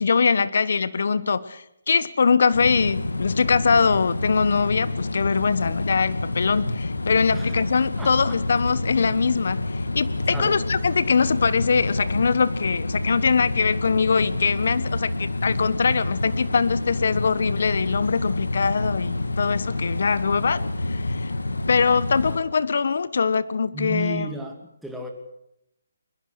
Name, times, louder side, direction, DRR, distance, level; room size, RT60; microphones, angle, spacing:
voice 1, 0.0-21.3 21.7-24.3, left 5 dB, 60° left, 16 dB, 1.2 m, -22 dB
sound 1, 2.5-22.4, left 2 dB, 85° left, 2.1 m, -28 dB
voice 2, 8.0-8.4 10.3-10.6 23.7-25.1, right 1 dB, ahead, 1 dB, 2.7 m, -34 dB
22.0 x 21.5 x 6.4 m, 0.79 s
figure-of-eight pair, 150°, 0 cm